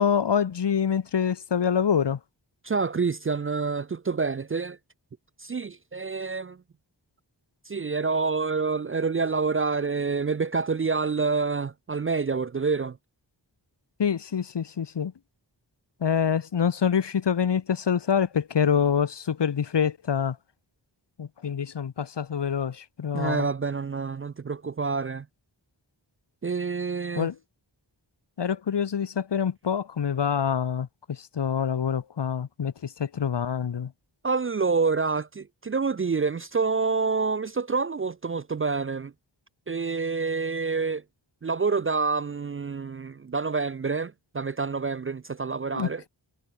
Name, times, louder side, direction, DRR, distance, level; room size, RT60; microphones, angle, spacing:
voice 1, 0.0-2.2 14.0-15.1 16.0-20.4 21.2-23.5 27.2-27.4 28.4-33.9 45.7-46.1, left 7 dB, 65° left, 0.8 m, -26 dB
voice 2, 2.6-4.8 5.4-6.6 7.7-13.0 23.1-25.3 26.4-27.3 34.2-39.1 39.7-41.0 41.4-46.0, right 4 dB, 30° right, 0.4 m, -27 dB
wide cardioid pair, 50°, 45 cm